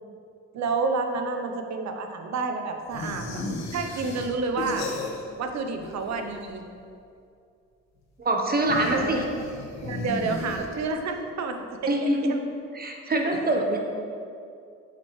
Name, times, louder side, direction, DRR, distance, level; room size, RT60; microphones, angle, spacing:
voice 1, 0.5-3.4 3.7-4.9 5.4-6.6 8.8-9.3 9.8-12.4, right 4 dB, 65° right, 5 dB, 0.8 m, -29 dB
sound 1, 2.9-5.5 5.7-6.6 8.6-11.1, left 2 dB, 65° left, 1.5 m, -35 dB
voice 2, 8.2-9.2 11.9-12.3 12.7-13.8, right 1 dB, 30° right, 1 dB, 1.0 m, -24 dB
7.7 x 5.9 x 3.2 m, 2.4 s
cardioid pair, 90°, 30 cm